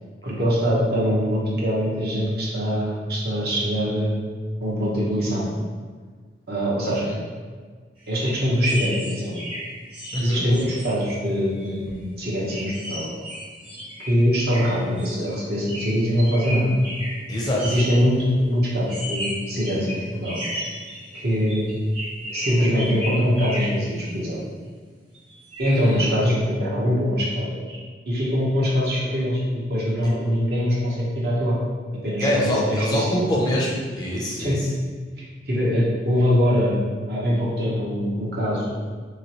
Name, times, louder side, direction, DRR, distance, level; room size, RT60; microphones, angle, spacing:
voice 1, 0.2-4.1 4.6-5.5 6.5-7.1 8.1-9.3 10.2-13.1 14.1-16.7 17.6-20.4 21.1-21.7 22.3-24.4 25.6-27.8 28.1-31.6 32.0-33.2 34.4-34.6 35.2-36.8 37.1-38.7, equal, 60° right, -5 dB, 0.8 m, -23 dB
sound 1, 8.0-10.9 11.5-11.7 12.0-12.1 12.5-15.3 15.7-18.0 18.9-24.1 25.1-25.8, equal, 30° right, 1.1 m, -34 dB
voice 2, 10.1-10.5 17.3-17.6 25.7-26.0 32.2-34.7, left 1 dB, 20° left, -3 dB, 0.4 m, -24 dB
3.0 x 2.9 x 2.8 m, 1.5 s
head